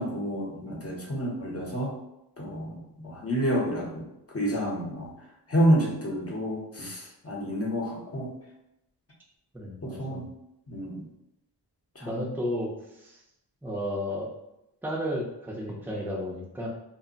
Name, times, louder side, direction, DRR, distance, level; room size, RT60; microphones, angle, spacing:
voice 1, 0.0-1.9 2.4-4.1 4.3-5.1 5.5-8.3 9.8-10.3 10.7-11.0 12.0-12.2, equal, 30° left, -2 dB, 0.9 m, -29 dB
voice 2, 9.5-10.2 12.0-13.2 13.6-14.3 14.8-16.7, equal, 5° right, -2 dB, 0.7 m, -33 dB
2.2 x 2.1 x 3.9 m, 0.86 s
cardioid pair, 55°, 44 cm